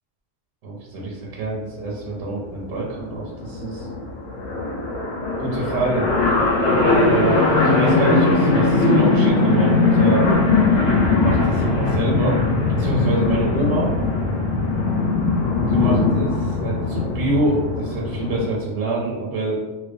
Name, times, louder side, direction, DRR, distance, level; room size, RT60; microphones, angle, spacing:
voice 1, 0.6-3.9 5.4-6.1 6.8-10.3 11.2-12.4 12.7-13.9 15.7-19.6, right 2 dB, 90° right, -3 dB, 0.9 m, -26 dB
sound 1, 2.0-2.1 2.4-2.5 2.6-18.5, left 3 dB, 70° left, 0.9 m, -20 dB
2.3 x 2.1 x 2.5 m, 1.1 s
omnidirectional pair, 1.3 m